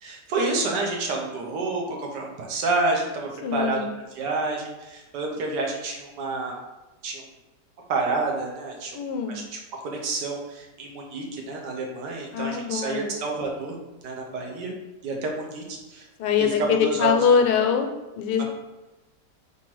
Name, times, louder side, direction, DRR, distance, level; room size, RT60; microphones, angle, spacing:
voice 1, 0.0-6.5 7.0-7.2 7.9-9.0 9.3-9.6 9.8-13.8 14.0-14.7 15.0-16.1 16.4-17.2 18.4-18.5, right 3 dB, 80° right, 0 dB, 1.5 m, -29 dB
voice 2, 3.4-3.8 8.9-9.3 12.3-13.1 16.2-17.9 18.1-18.4, left 7 dB, 85° left, 4 dB, 1.2 m, -23 dB
4.5 x 3.5 x 3.1 m, 1.1 s
omnidirectional pair, 1.8 m